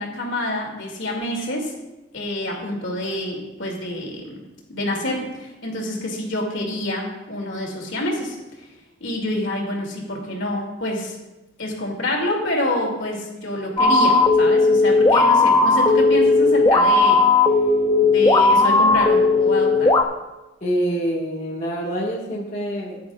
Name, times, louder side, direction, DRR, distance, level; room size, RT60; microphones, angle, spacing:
voice 1, 0.0-1.7 2.1-4.4 4.7-8.7 9.0-11.2 11.6-17.2 18.0-19.9, left 1 dB, 70° left, -1 dB, 2.6 m, -27 dB
sound 1, 13.8-20.0, left 3 dB, 20° left, 0.6 m, -16 dB
voice 2, 20.6-23.0, right 1 dB, 35° left, -6 dB, 1.7 m, -26 dB
15.5 x 10.5 x 2.5 m, 1.0 s
head